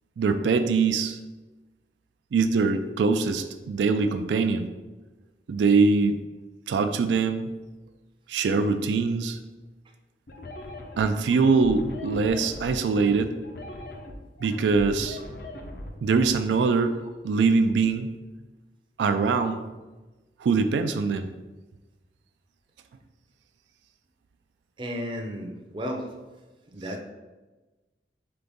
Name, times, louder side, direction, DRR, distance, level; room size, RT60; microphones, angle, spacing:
voice 1, 0.2-1.2 2.3-4.7 5.5-6.2 6.7-7.5 8.3-9.4 11.0-13.4 14.4-15.2 16.0-17.0 17.2-18.1 19.0-19.7 20.4-21.3, right 4 dB, 90° right, 8 dB, 0.3 m, -23 dB
sound 1, 10.3-16.3, left 1 dB, 60° left, 0.6 m, -40 dB
voice 2, 24.8-26.1 26.7-27.0, equal, 30° right, 2 dB, 0.5 m, -33 dB
3.9 x 3.9 x 3.5 m, 1.2 s
head